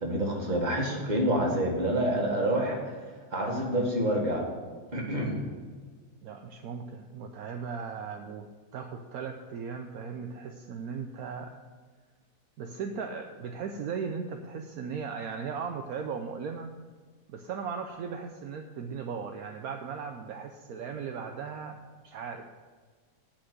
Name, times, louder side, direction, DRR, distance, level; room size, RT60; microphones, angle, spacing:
voice 1, 0.0-2.8 3.3-4.5 4.9-5.4, right 1 dB, 25° right, -1 dB, 1.8 m, -27 dB
voice 2, 6.2-8.5 8.7-11.5 12.6-16.7 17.3-21.8 22.0-22.5, right 6 dB, 70° right, 4 dB, 1.1 m, -37 dB
8.6 x 5.9 x 7.8 m, 1.5 s
omnidirectional pair, 1.7 m